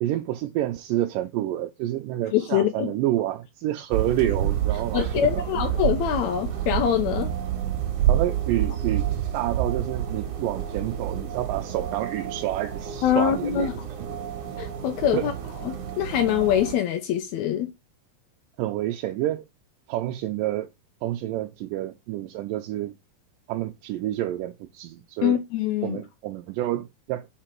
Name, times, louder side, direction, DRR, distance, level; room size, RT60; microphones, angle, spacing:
voice 1, 0.0-5.3 8.1-13.7 15.1-15.3 18.6-19.5 19.9-20.7 21.0-23.0 23.5-25.4 25.8-27.3, right 14 dB, 80° right, 2.1 m, -28 dB
voice 2, 2.3-2.9 4.9-7.3 13.0-13.7 14.6-15.3 15.6-17.7 25.2-26.0, left 10 dB, 85° left, 1.6 m, -24 dB
sound 1, 3.9-16.8, right 10 dB, 55° right, 2.0 m, -29 dB
5.1 x 4.9 x 4.5 m
omnidirectional pair, 4.1 m